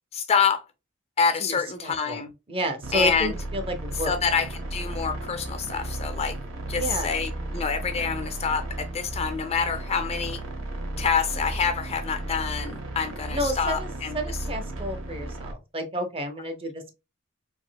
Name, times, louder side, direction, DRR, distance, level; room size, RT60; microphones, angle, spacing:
voice 1, 0.1-0.6 1.2-2.3 2.9-3.3 4.1-6.4 6.7-10.4 11.0-14.2, left 6 dB, 30° left, 0.4 m, -26 dB
voice 2, 1.4-2.2 2.5-4.1 6.7-7.1 13.3-16.9, equal, 25° right, 0.6 m, -31 dB
sound 1, 2.8-15.5, right 1 dB, 65° right, 0.9 m, -34 dB
4.1 x 2.6 x 2.2 m
head